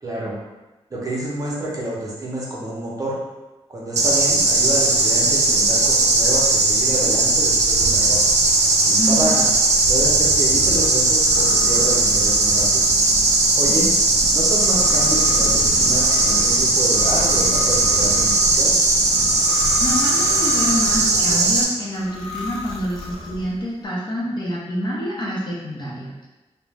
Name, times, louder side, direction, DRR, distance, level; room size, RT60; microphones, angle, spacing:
voice 1, 0.0-0.3 0.9-3.2 3.7-8.2 8.8-9.5 9.9-12.9 13.5-13.9 14.3-18.7, right 1 dB, 30° right, -5 dB, 0.7 m, -28 dB
sound 1, 4.0-21.6, right 2 dB, 80° right, 0.4 m, -18 dB
voice 2, 9.0-9.3 13.7-13.9 19.8-26.3, equal, 40° left, -5 dB, 0.7 m, -27 dB
sound 2, 11.1-21.4 21.9-23.6, left 1 dB, 75° left, 0.7 m, -32 dB
2.4 x 2.1 x 3.2 m, 1.1 s
wide cardioid pair, 110°, 11 cm